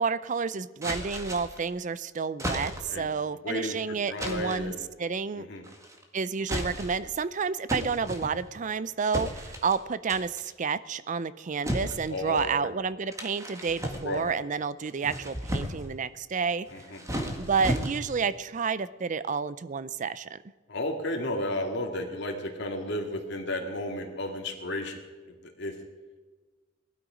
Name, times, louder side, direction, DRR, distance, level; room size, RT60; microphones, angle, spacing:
voice 1, 0.0-5.5 6.1-16.7 17.4-20.4, right 5 dB, 40° right, 17 dB, 0.4 m, -30 dB
sound 1, 0.8-1.7 2.4-3.0 4.2-4.7 5.6-6.0 6.4-7.1 7.7-8.7 9.1-9.8 10.1-10.5 11.6-12.5 13.1-14.4 14.9-15.9 16.7-18.3, equal, 15° right, 1.7 m, -34 dB
voice 2, 3.4-4.9 5.3-5.6 12.1-12.7 13.8-14.3 16.7-17.0 20.7-25.0 25.4-25.8, left 1 dB, 60° left, 2 dB, 2.2 m, -33 dB
19.0 x 12.5 x 5.1 m, 1.3 s
head